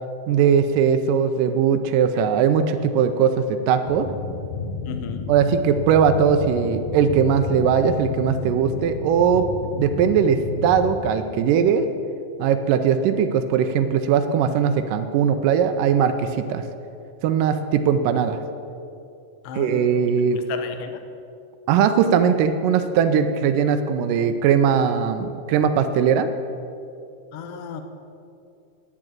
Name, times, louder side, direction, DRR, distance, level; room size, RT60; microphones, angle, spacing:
voice 1, 0.3-4.1 5.3-9.5 9.8-11.9 12.4-16.6 17.2-18.4 19.6-20.4 21.7-26.3, right 7 dB, 80° right, 7 dB, 2.1 m, -20 dB
sound 1, 3.8-11.0, left 4 dB, 50° left, 2.1 m, -31 dB
voice 2, 4.8-5.3 19.4-20.0 20.3-21.0 27.3-27.8, left 7 dB, 85° left, 7 dB, 1.2 m, -34 dB
9.7 x 7.5 x 9.1 m, 2.5 s
omnidirectional pair, 3.9 m